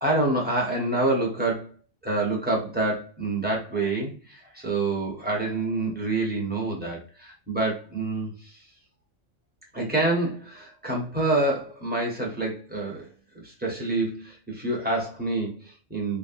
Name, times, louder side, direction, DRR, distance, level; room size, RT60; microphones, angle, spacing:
voice 1, 0.0-1.7 2.0-8.6 9.7-13.1 13.4-16.2, right 2 dB, 10° right, -3 dB, 0.7 m, -27 dB
3.3 x 2.1 x 2.4 m, 0.34 s
omnidirectional pair, 1.3 m